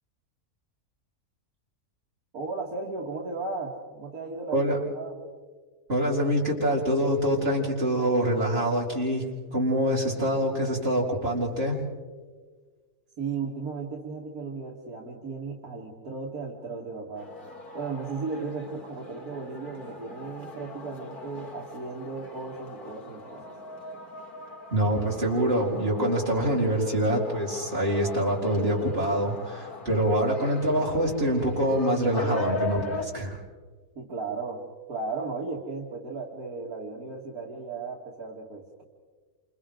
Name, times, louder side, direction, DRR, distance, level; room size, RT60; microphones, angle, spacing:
voice 1, 2.3-4.7 4.9-5.2 13.2-17.3 17.7-23.5 34.0-38.8, right 4 dB, 70° right, -2 dB, 2.5 m, -35 dB
voice 2, 5.9-11.8 24.7-33.4, equal, 40° right, -4 dB, 4.7 m, -25 dB
sound 1, 17.2-33.0, left 2 dB, 80° left, 2.6 m, -40 dB
29.0 x 28.0 x 3.9 m, 1.5 s
omnidirectional pair, 1.6 m